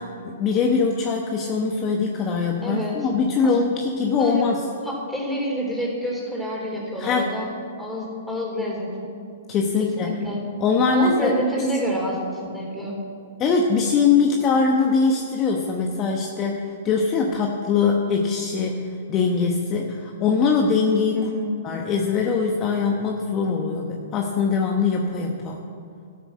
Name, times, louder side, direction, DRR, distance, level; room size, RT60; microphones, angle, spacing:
voice 1, 0.0-4.6 7.0-7.3 9.5-10.2 10.6-11.3 13.4-21.3 21.6-25.6, left 5 dB, 30° left, 1 dB, 1.1 m, -22 dB
voice 2, 2.6-2.9 3.4-3.5 4.2-4.5 4.8-7.5 7.8-9.1 10.0-10.4 10.9-13.0 21.1-21.5, equal, ahead, -4 dB, 3.6 m, -27 dB
12.5 x 8.5 x 6.3 m, 2.4 s
hypercardioid pair, 125°, 0 cm